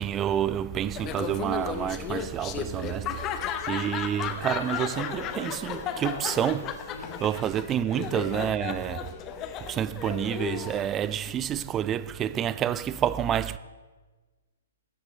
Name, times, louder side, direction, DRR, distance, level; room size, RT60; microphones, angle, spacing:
voice 1, 0.0-3.4 3.7-6.8 7.2-9.1 9.6-13.6, right 10 dB, 20° right, 0.3 m, -29 dB
Laughter, 0.9-11.3, left 8 dB, 25° left, 0.8 m, -35 dB
Speech, 4.3-9.4, left 3 dB, 65° left, 2.1 m, -44 dB
13.5 x 9.0 x 5.4 m
figure-of-eight pair, 120°, 0 cm